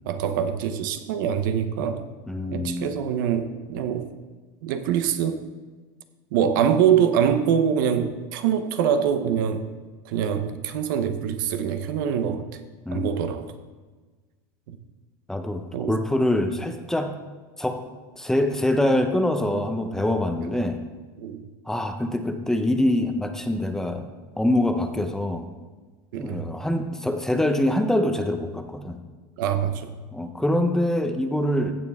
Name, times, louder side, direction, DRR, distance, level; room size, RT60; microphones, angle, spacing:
voice 1, 0.1-2.1 2.5-4.1 4.6-5.4 6.3-9.6 10.0-12.6 12.9-13.5 14.7-14.8 15.7-16.0 19.5-20.0 20.4-20.6 21.2-21.4 26.1-26.4 29.4-29.9, right 8 dB, 75° right, 9 dB, 0.9 m, -24 dB
voice 2, 2.3-2.9 12.9-13.1 15.3-17.1 17.6-17.8 18.2-20.8 21.7-24.0 24.4-25.5 26.2-29.0 30.1-31.7, left 1 dB, 5° left, 6 dB, 0.8 m, -24 dB
15.0 x 6.9 x 3.6 m, 1.3 s
supercardioid pair, 130°, 11 cm